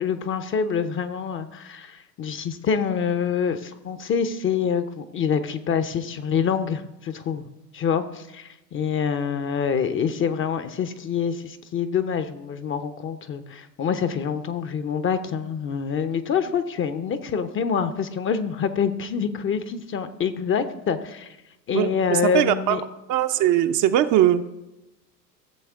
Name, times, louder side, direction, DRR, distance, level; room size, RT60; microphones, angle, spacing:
voice 1, 0.0-7.5 7.7-21.4 21.7-22.8, left 7 dB, 25° left, 10 dB, 0.7 m, -26 dB
voice 2, 21.7-22.8 23.1-24.5, right 12 dB, 40° right, 8 dB, 0.6 m, -20 dB
15.0 x 7.2 x 3.5 m, 0.97 s
hypercardioid pair, 90°, 49 cm